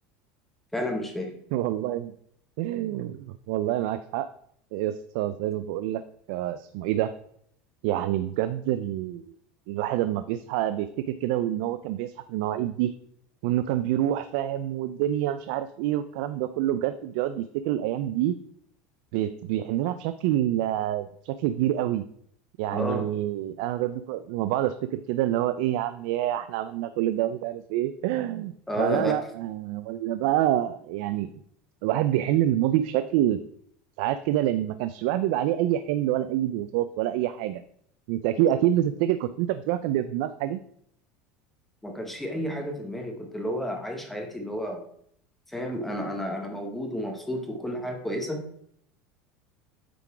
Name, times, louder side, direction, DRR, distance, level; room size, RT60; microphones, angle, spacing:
voice 1, 0.7-1.3 22.7-23.1 28.7-29.2 41.8-44.8 45.5-48.4, equal, 5° left, 3 dB, 0.7 m, -31 dB
voice 2, 1.5-2.1 2.6-4.3 4.7-6.0 6.3-7.1 7.8-9.2 9.7-12.9 13.4-18.4 19.1-22.0 22.6-31.3 31.8-33.4 34.0-37.6 38.1-40.6, right 12 dB, 60° right, 12 dB, 0.4 m, -27 dB
8.2 x 3.8 x 4.7 m, 0.66 s
cardioid pair, 175°, 5 cm